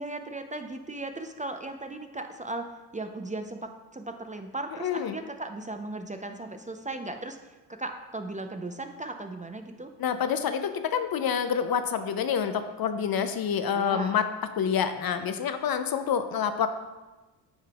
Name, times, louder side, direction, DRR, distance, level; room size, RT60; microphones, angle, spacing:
voice 1, 0.0-2.7 2.9-9.9 13.7-14.2, right 2 dB, 15° right, 6 dB, 0.6 m, -37 dB
voice 2, 4.8-5.2 10.0-14.3 14.6-16.7, left 7 dB, 45° left, 9 dB, 0.7 m, -27 dB
9.5 x 5.6 x 2.4 m, 1.2 s
hypercardioid pair, 50°, 49 cm